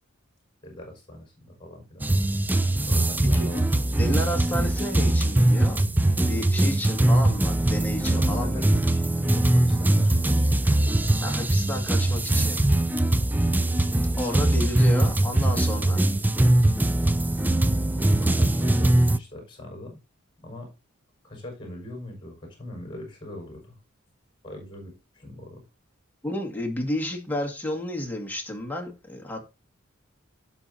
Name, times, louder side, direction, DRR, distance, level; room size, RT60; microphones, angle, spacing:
voice 1, 0.6-2.0 2.9-4.2 8.1-10.6 18.0-20.0 20.4-20.7 21.2-23.7 24.4-25.6, left 1 dB, 25° left, 5.7 m, -42 dB
sound 1, 2.0-19.2, right 1 dB, 10° right, 0.4 m, -22 dB
voice 2, 4.0-5.8 6.3-8.7 11.2-12.7 14.2-16.1 26.2-29.5, left 1 dB, 10° left, 2.1 m, -31 dB
17.0 x 5.9 x 2.8 m
head